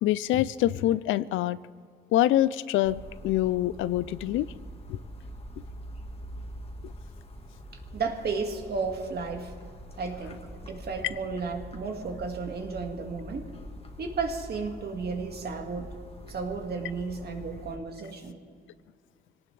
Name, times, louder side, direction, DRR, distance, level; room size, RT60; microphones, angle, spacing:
voice 1, 0.0-1.6 2.1-4.5 4.9-5.0, left 14 dB, 85° left, 18 dB, 0.4 m, -25 dB
sound 1, 2.8-17.8, equal, 30° left, 1.7 m, -44 dB
voice 2, 7.9-9.5 10.0-10.4 10.7-13.5 14.0-15.9 16.3-18.4, right 4 dB, 55° right, 3 dB, 2.0 m, -33 dB
23.0 x 18.0 x 3.3 m, 2.1 s
cardioid pair, 90°, 20 cm